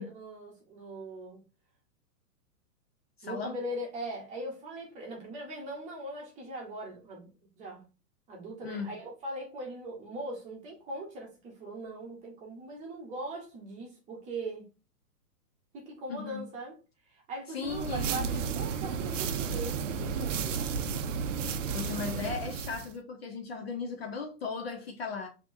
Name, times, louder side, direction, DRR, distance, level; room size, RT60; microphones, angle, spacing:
voice 1, 0.0-1.4 3.2-7.3 7.6-7.8 8.3-14.6 15.7-16.7 17.1-20.8, right 1 dB, 15° right, 0.9 m, -40 dB
voice 2, 3.2-3.5 8.6-8.9 16.1-16.5 17.5-18.1 21.7-25.3, left 5 dB, 40° left, 0.5 m, -37 dB
sound 1, 17.6-22.9, right 6 dB, 50° right, 0.6 m, -33 dB
5.9 x 2.9 x 2.6 m
hypercardioid pair, 155°, 48 cm